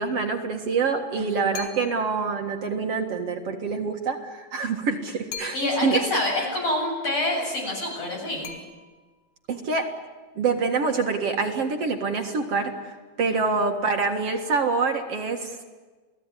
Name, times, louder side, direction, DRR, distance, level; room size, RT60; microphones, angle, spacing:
voice 1, 0.0-5.6 5.8-6.0 9.5-9.9 10.4-15.5, right 4 dB, 55° right, 3 dB, 2.7 m, -26 dB
voice 2, 1.2-1.5 5.5-8.6 13.3-13.4, left 1 dB, 55° left, 0 dB, 8.9 m, -27 dB
sound 1, 1.5-2.2 5.3-6.0 8.4-9.2, left 6 dB, 80° left, 3.7 m, -40 dB
29.0 x 18.0 x 9.9 m, 1.3 s
omnidirectional pair, 3.4 m